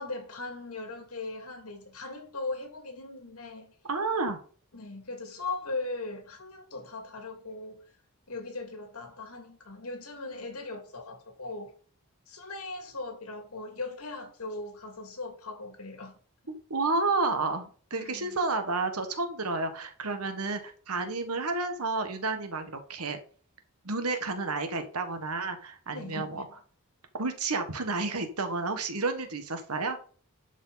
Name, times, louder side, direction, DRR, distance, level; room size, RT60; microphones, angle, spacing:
voice 1, 0.0-3.7 4.7-7.8 8.3-11.7 12.3-16.2 17.9-18.4 25.9-26.6, left 3 dB, 80° left, 2.3 m, -39 dB
voice 2, 3.9-4.4 16.7-23.2 23.8-26.4 27.1-30.0, right 3 dB, 85° right, 1.4 m, -31 dB
11.0 x 5.1 x 4.1 m
head